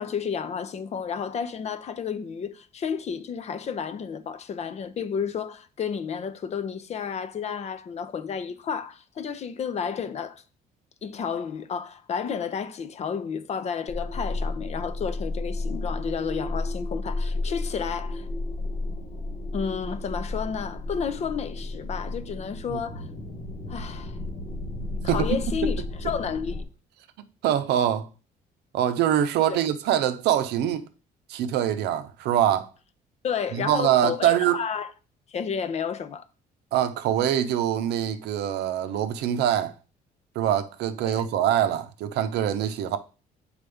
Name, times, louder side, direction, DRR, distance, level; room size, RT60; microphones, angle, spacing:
voice 1, 0.0-10.4 11.0-18.3 19.5-23.1 23.7-24.2 25.0-26.6 29.5-29.6 33.2-34.9 35.3-36.3 41.1-41.3, left 7 dB, 40° left, 0.6 m, -31 dB
sound 1, 13.9-26.6, left 2 dB, 60° left, 1.5 m, -32 dB
voice 2, 27.4-28.1 28.7-30.9 31.3-32.7 33.5-34.6 36.7-39.7 40.4-43.0, right 11 dB, 80° right, 0.7 m, -24 dB
6.9 x 4.4 x 3.5 m
cardioid pair, 110°, 17 cm